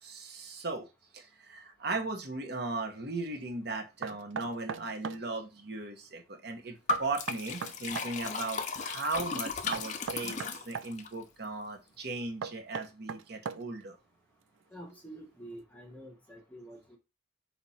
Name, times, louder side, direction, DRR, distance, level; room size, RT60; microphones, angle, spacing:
voice 1, 0.0-0.9 1.1-14.0, right 3 dB, 55° right, 4 dB, 0.9 m, -37 dB
Knock, 4.0-5.2 6.9-8.1 9.7-10.9 12.4-13.8, right 6 dB, 70° right, 0.4 m, -38 dB
Liquid, 6.9-11.1, left 4 dB, 40° left, 0.5 m, -35 dB
voice 2, 14.7-17.0, right 1 dB, 10° left, 1 dB, 0.9 m, -48 dB
4.2 x 2.9 x 4.1 m, 0.27 s
head